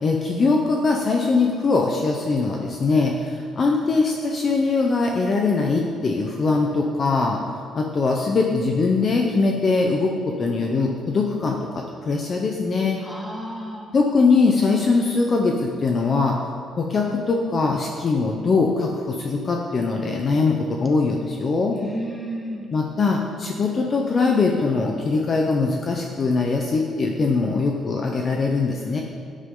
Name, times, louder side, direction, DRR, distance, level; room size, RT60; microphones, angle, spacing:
voice 1, 0.0-7.4 7.7-13.0 13.9-16.4 16.8-21.8 22.7-29.0, left 4 dB, 30° left, 1 dB, 0.8 m, -21 dB
voice 2, 13.0-13.9 21.7-22.7, equal, ahead, -1 dB, 1.7 m, -32 dB
17.0 x 10.0 x 3.8 m, 2.5 s
cardioid pair, 180°, 0 cm